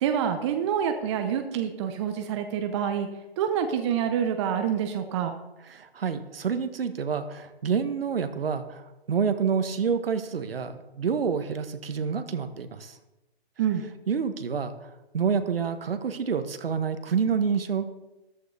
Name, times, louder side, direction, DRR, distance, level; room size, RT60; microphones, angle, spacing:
voice 1, 0.0-3.1 3.4-5.3 13.6-13.8, right 8 dB, 25° right, 6 dB, 0.9 m, -27 dB
voice 2, 5.7-13.0 14.1-14.7 15.1-17.8, right 6 dB, 65° right, 9 dB, 1.4 m, -28 dB
14.0 x 12.5 x 3.4 m, 0.99 s
figure-of-eight pair, 140°, 32 cm